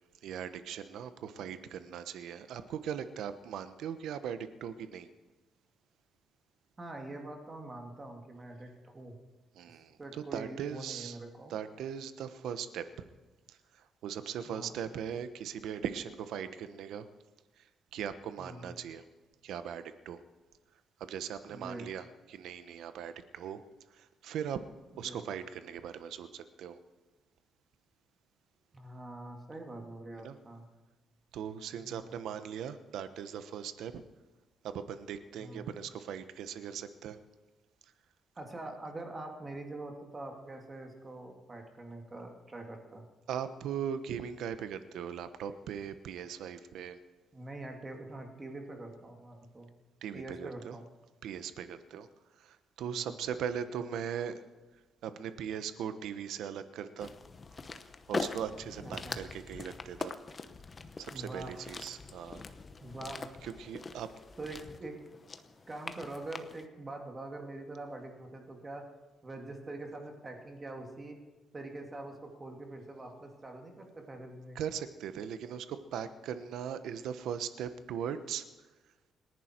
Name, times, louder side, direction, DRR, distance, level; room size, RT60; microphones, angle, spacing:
voice 1, 0.2-5.1 9.5-11.2 11.5-13.1 13.5-17.1 17.6-17.7 17.9-19.0 19.4-20.2 21.0-23.6 23.9-24.6 25.0-26.8 30.2-30.4 31.3-34.0 34.6-37.2 43.3-47.0 50.0-50.8 51.2-52.1 52.4-54.4 55.0-57.1 58.1-60.1 61.0-62.4 63.4-64.1 74.5-78.4, right 8 dB, 80° right, 11 dB, 1.1 m, -39 dB
voice 2, 6.8-9.1 10.0-11.6 14.5-14.7 18.4-18.7 21.5-21.8 25.0-25.2 28.7-30.7 31.7-32.2 35.4-35.7 38.4-43.0 47.3-49.7 50.1-50.9 52.9-53.2 58.8-59.2 61.1-61.7 62.8-63.3 64.4-65.0 65.7-68.8 69.2-71.2 71.5-74.6, right 2 dB, 20° right, 2 dB, 2.4 m, -44 dB
sound 1, 57.0-66.7, left 4 dB, 25° left, 0.9 m, -43 dB
28.0 x 11.0 x 4.6 m, 1.2 s
cardioid pair, 155°, 0 cm